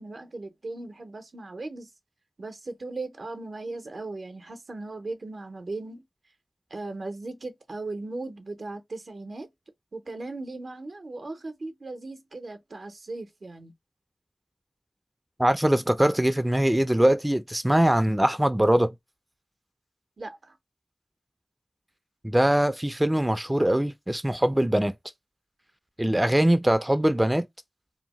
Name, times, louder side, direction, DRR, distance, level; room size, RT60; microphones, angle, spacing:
voice 1, 0.0-1.9 2.4-6.0 6.7-9.5 9.9-13.7 20.2-20.6, right 2 dB, 70° right, 0.6 m, -37 dB
voice 2, 15.4-18.9 22.2-24.9 26.0-27.4, right 1 dB, 15° right, 0.3 m, -22 dB
2.7 x 2.1 x 2.9 m
cardioid pair, 40°, 0 cm